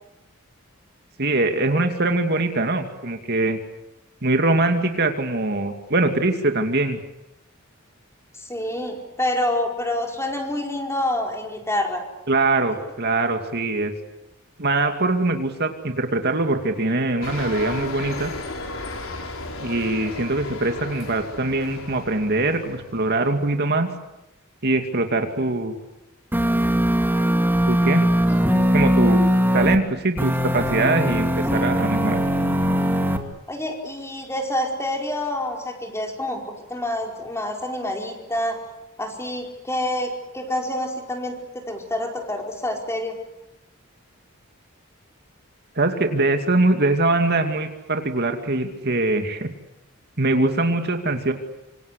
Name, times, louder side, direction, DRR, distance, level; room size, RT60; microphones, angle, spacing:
voice 1, 1.2-3.6 4.2-7.0 12.3-13.9 14.6-18.3 19.6-23.9 24.6-25.7 27.7-28.0 28.7-29.2 29.5-32.2 45.8-49.5 50.2-51.3, right 2 dB, 50° right, 5 dB, 2.5 m, -22 dB
voice 2, 8.4-12.0 28.3-28.5 33.5-38.6 39.0-43.2, left 1 dB, 15° left, 2 dB, 4.8 m, -27 dB
sound 1, 17.2-23.5, left 2 dB, 75° left, 4.6 m, -34 dB
sound 2, 26.3-29.8 30.2-33.2, equal, 10° right, 2.5 m, -20 dB
26.5 x 26.5 x 8.3 m, 0.92 s
head